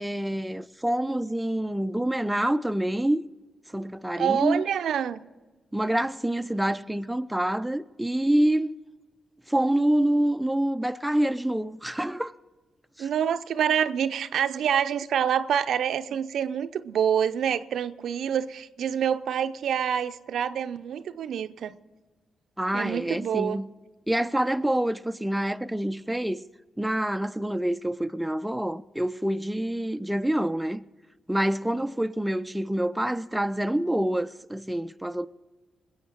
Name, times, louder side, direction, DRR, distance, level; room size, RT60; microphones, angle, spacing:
voice 1, 0.0-3.3 3.7-4.6 5.7-8.7 9.5-12.3 13.0-13.1 22.6-23.7 24.1-26.4 26.8-30.8 31.3-35.3, right 1 dB, 5° right, 0.6 m, -26 dB
voice 2, 4.2-5.2 13.0-21.8 22.7-23.6, right 8 dB, 75° right, 0.6 m, -27 dB
20.5 x 7.9 x 6.3 m
supercardioid pair, 50°, 0 cm